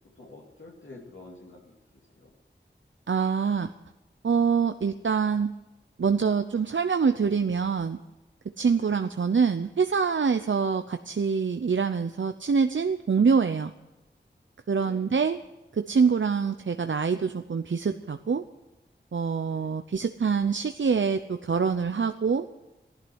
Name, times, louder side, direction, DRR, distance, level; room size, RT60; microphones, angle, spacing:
voice 1, 0.1-2.4 8.8-9.1 14.8-15.1 19.4-19.8, left 2 dB, 80° left, -3 dB, 3.0 m, -49 dB
voice 2, 3.1-3.7 4.2-5.5 6.0-8.0 8.6-13.7 14.7-15.4 15.7-18.4 19.1-22.4, right 5 dB, 80° right, 9 dB, 0.7 m, -25 dB
15.5 x 11.5 x 8.0 m, 1.0 s
wide cardioid pair, 70°, 19 cm